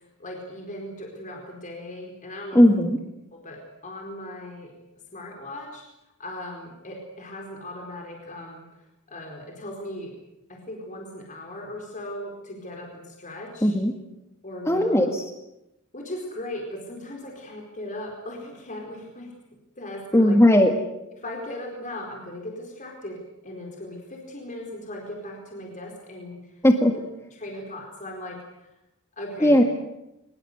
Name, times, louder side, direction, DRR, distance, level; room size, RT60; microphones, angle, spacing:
voice 1, 0.0-2.6 3.3-4.7 5.1-5.8 6.2-8.7 9.1-10.1 10.5-13.8 14.4-15.0 15.9-19.3 19.8-20.4 21.1-26.5 27.3-28.7 29.2-29.6, left 1 dB, 35° left, 1 dB, 4.5 m, -38 dB
voice 2, 2.6-3.0 13.6-13.9 14.7-15.2 20.1-20.7 26.6-26.9 29.4-29.6, left 1 dB, 15° left, 4 dB, 1.8 m, -17 dB
23.5 x 22.5 x 8.0 m, 0.89 s
head